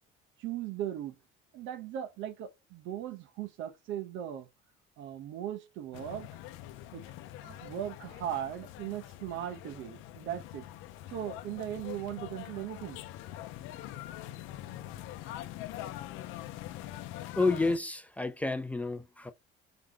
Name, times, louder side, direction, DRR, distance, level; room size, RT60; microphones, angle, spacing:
voice 1, 0.4-1.2 1.5-4.5 5.0-6.3 6.9-7.0 7.4-10.6 11.1-13.0, right 11 dB, 75° right, 0.8 m, -38 dB
sound 1, 5.9-17.8, left 13 dB, 90° left, 0.6 m, -44 dB
voice 2, 17.4-19.3, left 3 dB, 5° left, 0.4 m, -30 dB
3.9 x 3.4 x 3.7 m
cardioid pair, 150°, 20 cm